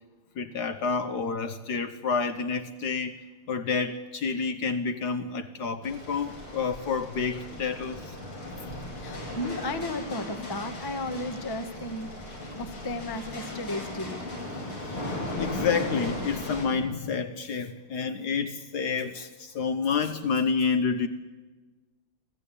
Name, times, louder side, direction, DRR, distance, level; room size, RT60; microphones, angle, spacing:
voice 1, 0.4-3.2 3.5-8.2 8.6-8.7 14.5-14.6 15.0-15.1 15.4-21.1, left 5 dB, 60° left, 9 dB, 1.3 m, -29 dB
sound 1, 5.8-16.7, left 1 dB, 85° left, 5.4 m, -37 dB
voice 2, 8.9-12.1 12.6-14.2, left 1 dB, 15° left, 8 dB, 0.8 m, -34 dB
25.0 x 15.0 x 8.4 m, 1.3 s
omnidirectional pair, 2.3 m